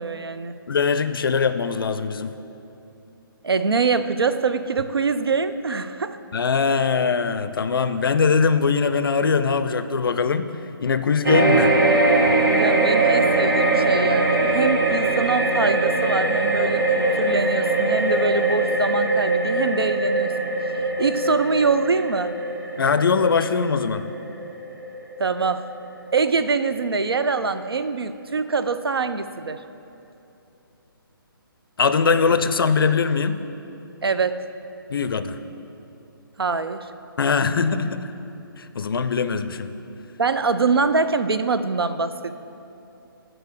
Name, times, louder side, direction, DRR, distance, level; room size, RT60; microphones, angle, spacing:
voice 1, 0.0-0.5 3.4-6.2 12.5-20.3 20.8-22.3 25.2-25.7 26.1-29.6 34.0-34.4 36.4-36.9 40.2-42.3, right 4 dB, 90° right, 11 dB, 0.4 m, -24 dB
voice 2, 0.7-2.3 6.3-10.5 10.8-11.8 12.3-12.4 22.8-24.1 31.8-33.4 34.9-35.4 37.2-38.1 38.6-39.7, left 5 dB, 70° left, 11 dB, 0.4 m, -21 dB
sound 1, 11.2-25.8 26.2-26.4, right 2 dB, 60° right, 1.1 m, -21 dB
6.2 x 4.4 x 6.5 m, 2.8 s
figure-of-eight pair, 145°, 12 cm